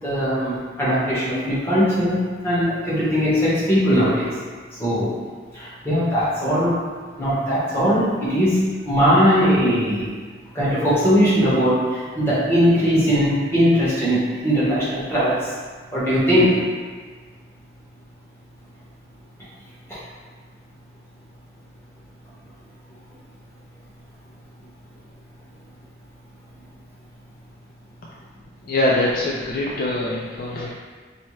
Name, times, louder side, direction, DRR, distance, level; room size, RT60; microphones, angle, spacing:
voice 1, 0.0-2.2 2.4-4.3 4.8-5.1 5.5-6.7 7.2-8.6 8.9-10.1 10.5-15.4 15.9-16.5, equal, 10° left, -10 dB, 1.1 m, -19 dB
voice 2, 28.6-30.7, left 1 dB, 45° left, -4 dB, 0.3 m, -23 dB
4.1 x 2.2 x 3.1 m, 1.5 s
head